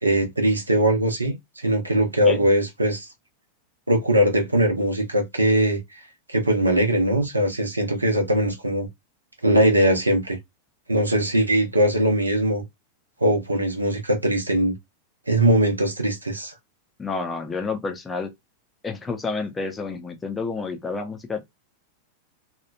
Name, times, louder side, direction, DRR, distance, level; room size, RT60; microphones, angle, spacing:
voice 1, 0.0-3.1 3.9-6.0 6.3-8.9 9.4-10.4 10.9-12.6 13.2-14.7 15.3-16.5, right 1 dB, 80° right, 0.7 m, -21 dB
voice 2, 17.0-18.3 18.8-21.4, left 4 dB, 15° left, 0.6 m, -29 dB
2.9 x 2.3 x 2.2 m
figure-of-eight pair, 90°, 0 cm